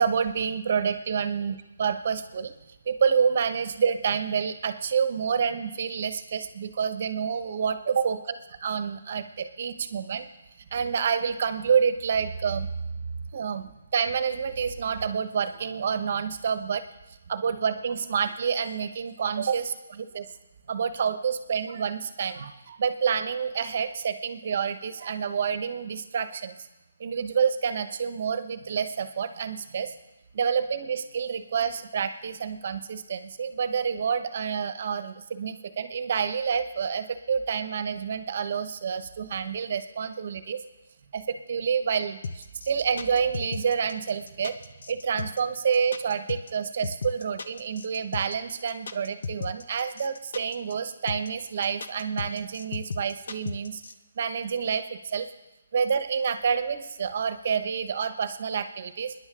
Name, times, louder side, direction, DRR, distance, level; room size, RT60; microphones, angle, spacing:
voice 1, 0.0-1.5 1.8-2.5 2.9-8.2 8.6-10.3 10.7-12.7 13.3-16.8 17.3-20.2 20.7-26.6 27.0-29.9 30.3-40.6 41.1-44.6 44.9-53.8 54.2-55.3 55.7-59.1, right 6 dB, 45° right, 11 dB, 1.1 m, -28 dB
sound 1, 42.2-53.9, left 4 dB, 65° left, 0.9 m, -35 dB
27.0 x 10.5 x 3.8 m, 1.0 s
hypercardioid pair, 165°, 0 cm